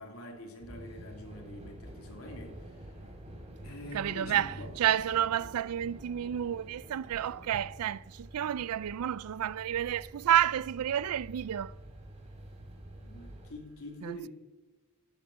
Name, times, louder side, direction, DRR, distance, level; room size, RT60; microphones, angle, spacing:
voice 1, 0.0-2.9 3.6-4.7 13.0-14.3, left 1 dB, 75° left, 2.8 m, -45 dB
sound 1, 0.6-13.5, right 1 dB, 30° right, 3.0 m, -48 dB
voice 2, 3.9-11.7 14.0-14.3, right 10 dB, 80° right, 0.3 m, -30 dB
12.5 x 9.0 x 8.0 m
head